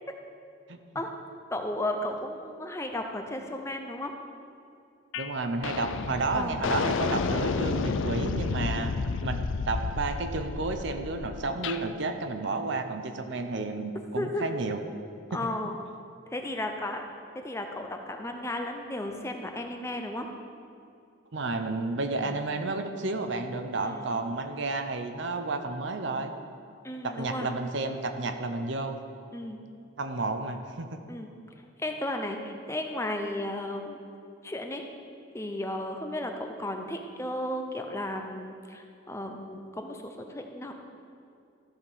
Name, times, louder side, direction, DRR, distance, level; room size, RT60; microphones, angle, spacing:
voice 1, 1.5-4.1 6.3-6.6 14.2-14.5 15.3-15.8 16.3-17.0 17.3-20.3 22.1-22.4 23.8-24.1 26.8-27.5 29.3-29.6 31.1-31.3 31.8-34.0 34.4-34.9 35.3-40.7, left 1 dB, 15° left, 4 dB, 0.6 m, -34 dB
sound 1, 5.1-5.3 5.6-11.8, left 4 dB, 70° left, 0.4 m, -31 dB
voice 2, 5.2-8.9 9.2-9.4 9.7-14.8 15.3-15.5 21.3-26.3 27.0-29.0 30.0-30.9, right 3 dB, 60° right, 7 dB, 0.7 m, -31 dB
14.0 x 5.1 x 5.5 m, 2.5 s
head